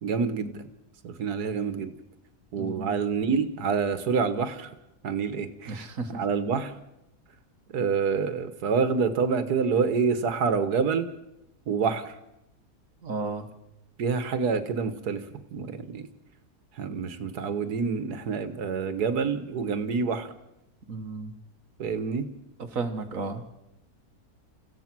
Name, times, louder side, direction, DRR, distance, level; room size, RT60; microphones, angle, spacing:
voice 1, 0.0-0.7 1.0-1.9 2.5-4.7 5.0-5.8 6.1-6.7 7.7-11.1 11.7-12.2 14.0-15.3 15.5-16.1 16.8-20.3 21.8-22.3, right 5 dB, 85° right, 11 dB, 1.8 m, -27 dB
voice 2, 2.6-3.0 5.7-6.2 13.0-13.5 20.9-21.3 22.7-23.5, right 3 dB, 60° right, 7 dB, 1.7 m, -33 dB
29.0 x 15.5 x 6.0 m, 0.88 s
omnidirectional pair, 1.6 m